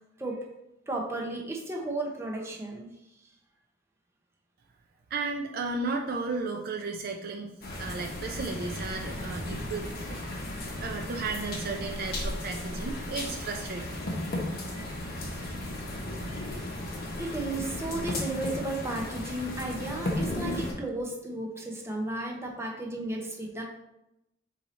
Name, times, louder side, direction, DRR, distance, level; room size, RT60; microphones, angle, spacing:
voice 1, 0.9-2.9 14.7-14.9 16.1-16.5 17.2-23.6, right 2 dB, 15° right, -1 dB, 0.7 m, -34 dB
voice 2, 5.1-7.5 7.8-10.4 10.8-13.9, right 3 dB, 50° right, 2 dB, 0.4 m, -34 dB
sound 1, 7.6-20.7, left 1 dB, 55° left, 0.9 m, -35 dB
4.6 x 2.8 x 4.0 m, 0.88 s
head